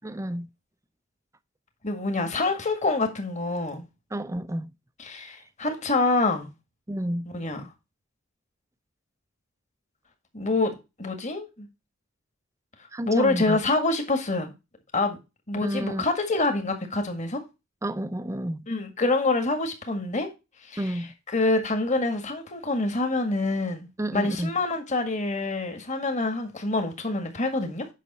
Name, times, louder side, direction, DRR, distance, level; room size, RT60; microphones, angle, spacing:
voice 1, 0.0-0.5 4.1-4.7 6.9-7.3 12.9-13.6 15.6-16.1 17.8-18.7 20.8-21.1 24.0-24.6, right 1 dB, 15° right, 0.5 m, -30 dB
voice 2, 1.8-3.9 5.0-6.5 7.3-7.6 10.3-11.7 13.0-14.5 14.9-15.2 15.5-17.4 18.7-20.3 20.7-20.8 21.3-27.9, left 2 dB, 35° left, 1.8 m, -26 dB
8.4 x 5.9 x 4.1 m
head